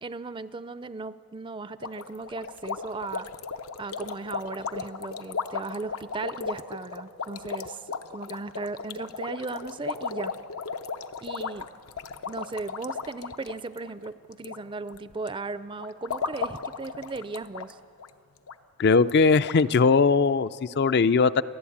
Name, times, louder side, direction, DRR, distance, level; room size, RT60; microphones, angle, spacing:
voice 1, 0.0-3.3 3.8-7.8 8.1-10.3 11.2-11.7 12.3-17.8, right 3 dB, 25° right, 15 dB, 0.4 m, -36 dB
sound 1, 1.8-14.6 14.8-15.3 15.8-17.7 18.0-18.1 18.5-18.6 19.1-19.2 19.4-19.6, left 5 dB, 85° left, 0.7 m, -35 dB
voice 2, 18.8-21.4, left 4 dB, 50° left, 14 dB, 0.4 m, -20 dB
29.5 x 11.5 x 8.6 m, 2.5 s
head